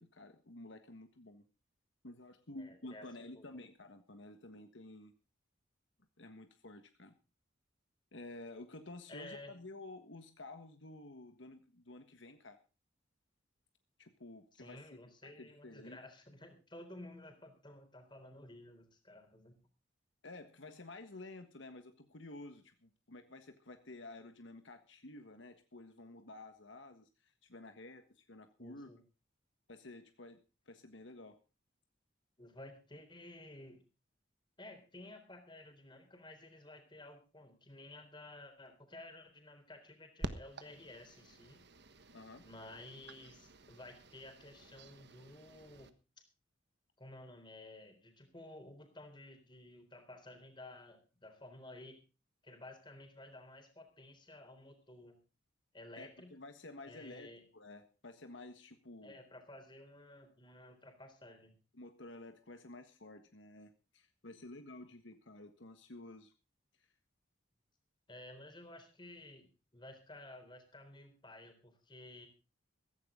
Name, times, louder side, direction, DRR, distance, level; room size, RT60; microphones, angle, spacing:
voice 1, 0.0-1.5 2.0-5.1 6.2-7.2 8.1-12.6 14.0-16.0 20.2-28.9 29.7-30.4 30.7-31.4 42.1-42.4 56.0-59.2 61.7-66.3 66.8-66.9, left 2 dB, 70° left, 7 dB, 1.5 m, -52 dB
voice 2, 2.5-3.1 3.3-3.4 9.1-9.6 14.6-19.6 28.6-29.0 32.4-33.8 34.6-41.7 42.4-45.9 47.0-52.0 52.4-55.2 55.7-56.3 56.8-57.4 59.0-61.6 68.1-72.3, left 1 dB, 25° left, 6 dB, 3.8 m, -53 dB
sound 1, 40.2-45.9, right 2 dB, 60° right, 1.3 m, -49 dB
15.5 x 15.0 x 3.8 m, 0.32 s
head